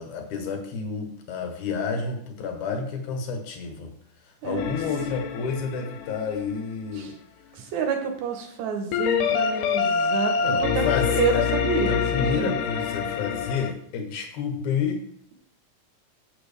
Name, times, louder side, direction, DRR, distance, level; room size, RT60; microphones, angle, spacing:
voice 1, 0.0-3.9 4.4-7.1 10.4-11.5 11.8-15.0, left 5 dB, 70° left, 4 dB, 2.6 m, -30 dB
sound 1, 4.6-7.0 8.9-13.7, left 7 dB, 90° left, 2.3 m, -26 dB
voice 2, 7.5-12.6, right 6 dB, 70° right, 4 dB, 2.2 m, -29 dB
8.4 x 7.2 x 3.4 m, 0.67 s
omnidirectional pair, 3.7 m